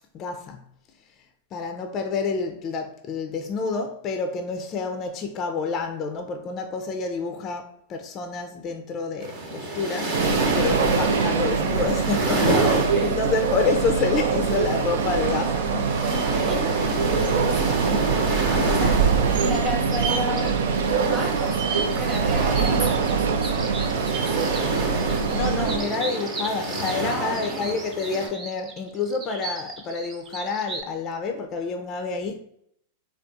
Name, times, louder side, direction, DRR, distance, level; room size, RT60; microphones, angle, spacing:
voice 1, 0.1-0.6 1.5-10.2 10.5-16.2 25.3-32.4, left 4 dB, 35° left, 0.4 m, -28 dB
sound 1, 9.2-28.3, right 2 dB, 55° right, 0.9 m, -30 dB
sound 2, 10.1-25.8, right 5 dB, 75° right, 0.3 m, -24 dB
voice 2, 12.3-13.2 16.0-24.5 27.0-27.7, left 1 dB, 15° right, 1.0 m, -34 dB
sound 3, 19.9-30.8, right 3 dB, 30° right, 0.6 m, -38 dB
3.5 x 2.3 x 2.6 m
hypercardioid pair, 105°, 0 cm